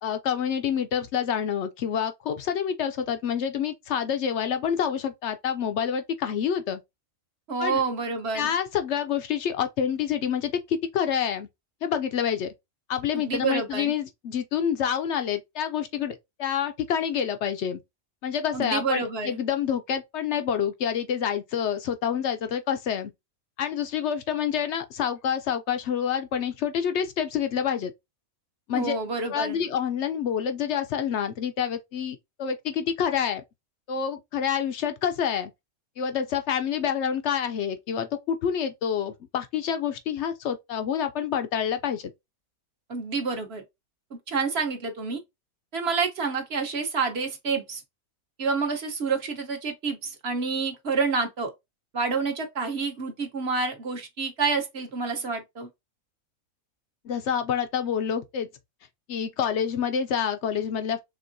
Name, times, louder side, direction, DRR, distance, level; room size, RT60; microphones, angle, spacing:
voice 1, 0.0-6.8 7.6-7.8 8.3-11.5 11.8-12.5 12.9-17.8 18.2-23.1 23.6-27.9 28.7-28.9 29.3-33.4 33.9-35.5 36.0-42.1 57.0-58.5 59.1-61.0, left 8 dB, 65° left, 0.8 m, -27 dB
voice 2, 7.5-8.5 13.1-13.9 18.5-19.4 28.7-29.6 42.9-43.6 44.1-45.2 45.7-47.8 48.4-51.5 51.9-55.7, right 4 dB, 50° right, 1.1 m, -28 dB
5.1 x 3.5 x 2.6 m
omnidirectional pair, 1.5 m